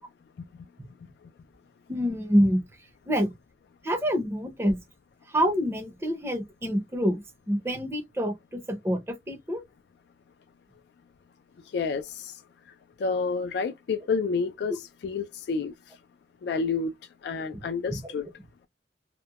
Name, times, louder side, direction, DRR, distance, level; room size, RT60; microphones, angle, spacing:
voice 1, 1.9-2.6 3.1-3.3 3.8-4.8 5.3-9.6 17.5-17.6 17.9-18.0, equal, 15° right, 0.6 m, -26 dB
voice 2, 11.7-12.3 13.0-15.7 16.4-16.9 17.2-18.2, left 4 dB, 65° left, 0.3 m, -29 dB
2.8 x 2.1 x 2.2 m
head